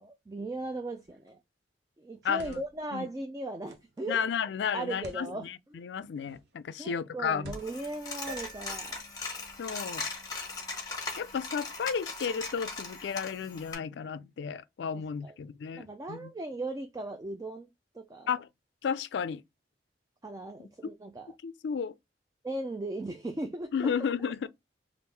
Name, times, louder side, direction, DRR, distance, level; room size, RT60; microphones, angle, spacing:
voice 1, 0.0-1.4 2.0-4.2 4.7-5.5 5.7-5.8 6.8-9.0 14.9-15.3 15.7-17.7 17.9-18.3 20.2-21.3 22.4-23.7, right 2 dB, 20° right, 0.3 m, -37 dB
sound 1, 1.0-1.3 2.1-2.9 3.7-4.0 4.9-5.3 6.2-6.6 7.4-8.0, right 1 dB, 70° right, 0.6 m, -50 dB
voice 2, 2.2-2.6 2.9-3.1 4.1-7.5 9.6-10.1 11.2-16.3 18.3-18.5 18.8-19.4 21.4-21.9 23.7-24.5, left 6 dB, 80° left, 0.3 m, -33 dB
Coin (dropping), 7.5-13.7, left 4 dB, 20° left, 0.9 m, -39 dB
sound 2, 8.3-12.8, right 3 dB, 5° left, 1.3 m, -52 dB
3.5 x 2.4 x 3.2 m
head